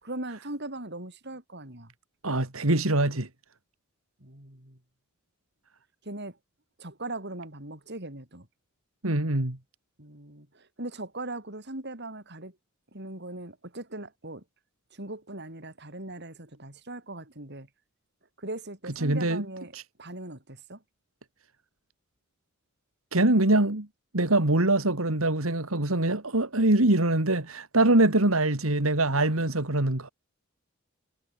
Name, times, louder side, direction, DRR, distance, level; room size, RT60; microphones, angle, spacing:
voice 1, 0.0-1.9 4.2-4.8 6.0-6.4 6.8-8.5 10.0-12.5 12.9-14.4 14.9-17.7 18.4-20.8 29.1-29.5, right 2 dB, 55° right, 6.5 m, -40 dB
voice 2, 2.2-3.3 9.0-9.6 19.0-19.4 19.7-19.8 23.1-23.9 24.1-30.1, right 2 dB, 90° right, 2.7 m, -23 dB
head